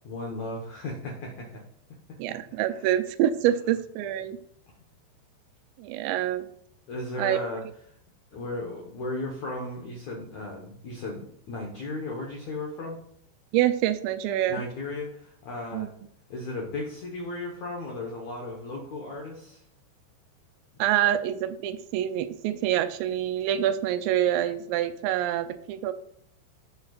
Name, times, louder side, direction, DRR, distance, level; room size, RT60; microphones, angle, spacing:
voice 1, 0.0-1.6 2.8-2.9 6.9-7.6 8.3-13.0 14.5-15.9 16.3-19.6 20.7-20.8, left 2 dB, 85° left, -1 dB, 1.6 m, -35 dB
voice 2, 2.2-4.4 5.8-6.5 7.2-7.4 13.5-14.6 15.7-15.9 20.8-25.9, right 11 dB, 85° right, 10 dB, 2.7 m, -26 dB
15.5 x 5.6 x 2.4 m, 0.67 s
omnidirectional pair, 5.3 m